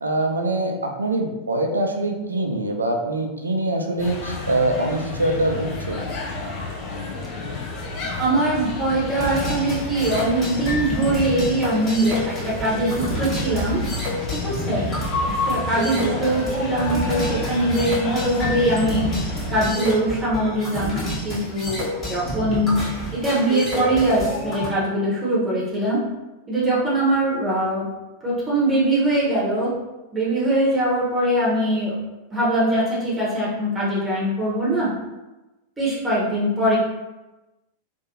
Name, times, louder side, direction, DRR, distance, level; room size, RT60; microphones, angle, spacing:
voice 1, 0.0-6.1, right 2 dB, 75° right, 3 dB, 0.3 m, -24 dB
sound 1, 4.0-19.6, left 3 dB, 40° left, 0.6 m, -31 dB
voice 2, 8.2-13.8 14.4-14.8 15.5-19.1 19.5-22.8 23.1-26.0 26.5-27.9 28.2-29.7 30.1-31.9 32.3-34.9 35.8-36.8, right 1 dB, 15° right, -7 dB, 0.9 m, -22 dB
sound 2, 9.2-24.7, equal, 25° left, 1.2 m, -29 dB
2.6 x 2.5 x 2.7 m, 1.1 s
figure-of-eight pair, 90°, 0 cm